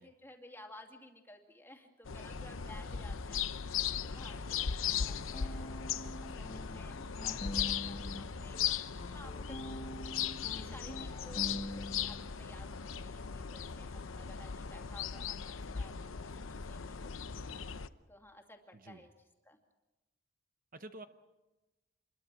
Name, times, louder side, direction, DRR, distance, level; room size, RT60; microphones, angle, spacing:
voice 1, 0.0-5.9 6.2-8.7 9.1-9.9 10.3-19.1 19.5-19.6, left 1 dB, 10° left, 3 dB, 2.6 m, -56 dB
sound 1, 2.0-17.9, left 7 dB, 85° left, 0.8 m, -38 dB
sound 2, 4.4-8.3 8.5-12.3, equal, 30° left, 1.0 m, -45 dB
voice 2, 8.1-8.6 18.7-19.1 20.7-21.1, right 2 dB, 45° right, 9 dB, 0.9 m, -51 dB
27.0 x 22.0 x 6.3 m, 1.1 s
head